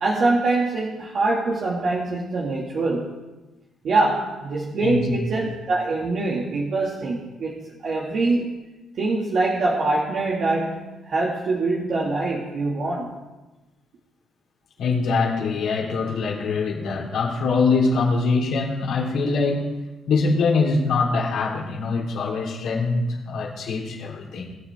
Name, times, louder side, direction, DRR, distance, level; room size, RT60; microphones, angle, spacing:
voice 1, 0.0-3.1 3.8-8.5 9.0-10.8 11.1-13.1, right 3 dB, 60° right, -4 dB, 2.1 m, -24 dB
voice 2, 4.8-5.2 14.8-19.7 20.1-24.5, left 4 dB, 75° left, -2 dB, 3.4 m, -23 dB
22.5 x 7.6 x 3.5 m, 1.1 s
cardioid pair, 90°, 0 cm